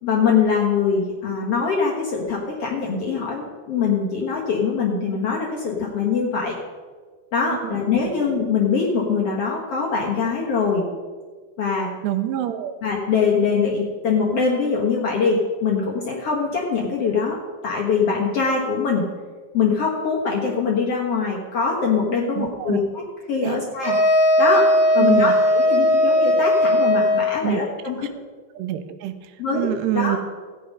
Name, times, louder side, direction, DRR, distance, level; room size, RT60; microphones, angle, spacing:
voice 1, 0.0-6.6 7.3-10.9 11.6-11.9 12.8-17.4 17.6-19.0 19.5-23.0 23.3-23.9 24.4-28.0 29.4-29.7 29.9-30.2, left 5 dB, 80° left, -2 dB, 1.3 m, -23 dB
voice 2, 12.0-12.8 22.4-22.8 23.4-23.6 25.0-25.3 27.4-27.6 28.6-30.2, right 13 dB, 85° right, 9 dB, 2.7 m, -26 dB
sound 1, 23.8-27.5, left 1 dB, 15° right, 4.8 m, -17 dB
15.0 x 8.8 x 5.4 m, 1.5 s
omnidirectional pair, 4.9 m